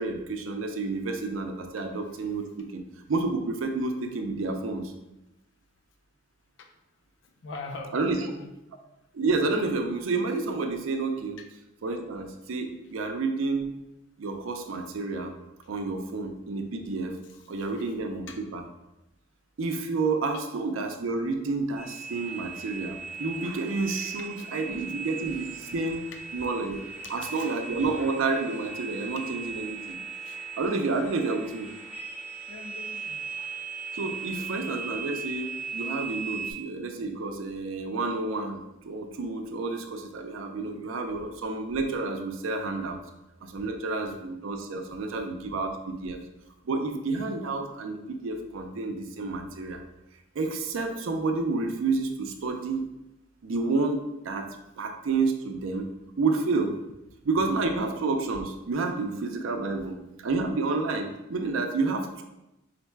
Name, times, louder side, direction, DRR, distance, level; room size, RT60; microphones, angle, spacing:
voice 1, 0.0-2.8 3.1-4.9 7.9-8.2 9.1-11.4 11.8-13.7 14.2-15.3 15.7-17.1 17.5-18.6 19.6-26.0 26.3-26.8 27.1-30.0 30.6-31.7 33.9-43.0 43.4-46.2 46.7-49.8 50.4-52.9 53.4-55.9 56.2-56.8 57.2-60.0 60.2-62.2, right 3 dB, 80° right, 5 dB, 0.5 m, -30 dB
voice 2, 7.4-8.5 11.4-11.5 12.8-12.9 17.2-17.4 17.8-17.9 18.3-18.4 24.2-24.8 27.0-27.5 27.8-27.9 30.2-30.4 32.5-33.2 34.4-34.8, left 3 dB, 65° left, 2 dB, 0.4 m, -43 dB
sound 1, 21.8-36.5, right 5 dB, 5° right, 0.6 m, -38 dB
3.9 x 2.1 x 4.5 m, 0.92 s
head